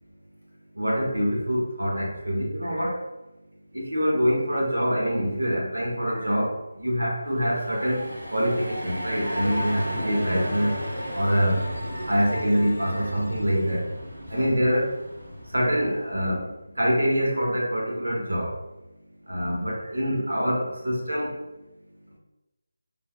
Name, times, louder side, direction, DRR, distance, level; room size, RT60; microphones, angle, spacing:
voice 1, 0.8-3.0 3.7-6.5 6.8-8.0 8.3-10.7 11.1-11.6 12.1-13.8 14.3-14.9 15.5-16.4 16.8-18.5 19.3-21.3, equal, 90° right, -3 dB, 1.0 m, -25 dB
sound 1, 7.3-16.0, equal, 65° right, 1.3 m, -34 dB
3.3 x 2.1 x 2.3 m, 0.97 s
figure-of-eight pair, 165°, 0 cm